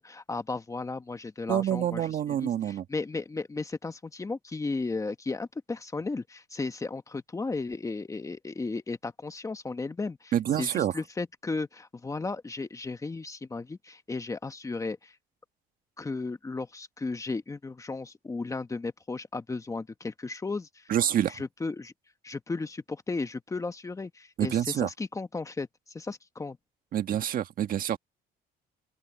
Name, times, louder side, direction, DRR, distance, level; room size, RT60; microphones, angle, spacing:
voice 1, 0.0-10.3 10.6-15.1 16.0-20.9 21.3-21.9 22.2-26.6, left 3 dB, 20° left, 1.3 m, -35 dB
voice 2, 1.5-2.8 10.3-10.9 20.9-21.4 24.4-24.9 26.9-28.0, right 10 dB, 55° right, 1.6 m, -27 dB
open air
cardioid pair, 110°, 17 cm